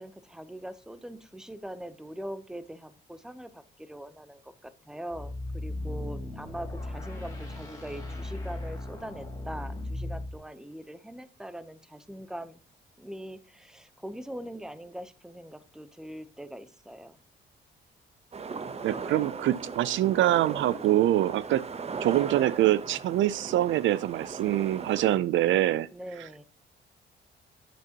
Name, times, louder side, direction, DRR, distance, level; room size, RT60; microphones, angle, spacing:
voice 1, 0.0-12.6 13.0-17.2 25.9-26.4, right 1 dB, 5° right, 0.8 m, -42 dB
sound 1, 5.1-10.4, left 1 dB, 20° left, 3.8 m, -37 dB
sound 2, 18.3-25.2, right 5 dB, 30° right, 0.8 m, -38 dB
voice 2, 18.8-21.6 22.0-25.9, right 14 dB, 75° right, 0.5 m, -24 dB
9.3 x 8.2 x 2.9 m
cardioid pair, 90°, 20 cm